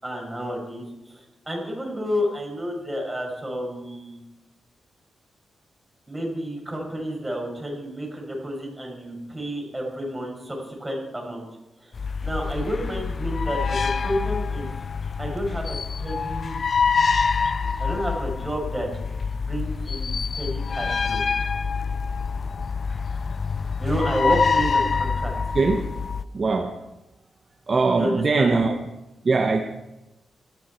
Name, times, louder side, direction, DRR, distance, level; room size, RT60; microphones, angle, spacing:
voice 1, 0.0-4.2 6.1-11.4 11.8-11.9 12.2-14.7 15.2-16.6 17.8-18.9 19.4-21.2 23.8-25.3 27.9-28.6, equal, 10° right, -1 dB, 6.9 m, -30 dB
sound 1, 11.9-26.2, left 5 dB, 45° left, 0.5 m, -26 dB
voice 2, 25.5-25.9 26.3-26.7 27.7-28.8 29.2-29.6, right 3 dB, 40° right, 4 dB, 1.2 m, -21 dB
20.0 x 14.0 x 4.6 m, 0.98 s
cardioid pair, 100°, 0 cm